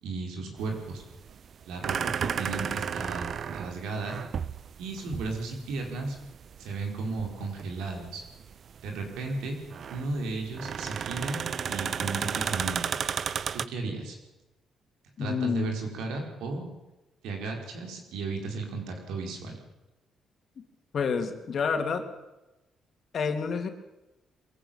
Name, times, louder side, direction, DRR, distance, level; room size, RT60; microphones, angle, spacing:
voice 1, 0.0-1.0 1.6-4.2 4.8-6.2 6.6-8.2 8.8-9.6 9.9-13.0 13.5-14.2 15.2-16.7 17.2-19.6, right 3 dB, 85° right, 3 dB, 5.2 m, -34 dB
sound 1, 0.6-13.7, right 7 dB, 55° right, 0.8 m, -34 dB
voice 2, 15.2-15.7 20.6-20.7 20.9-22.0 23.1-23.7, left 6 dB, 55° left, 6 dB, 3.1 m, -28 dB
22.5 x 16.0 x 9.1 m, 0.99 s
cardioid pair, 90°, 0 cm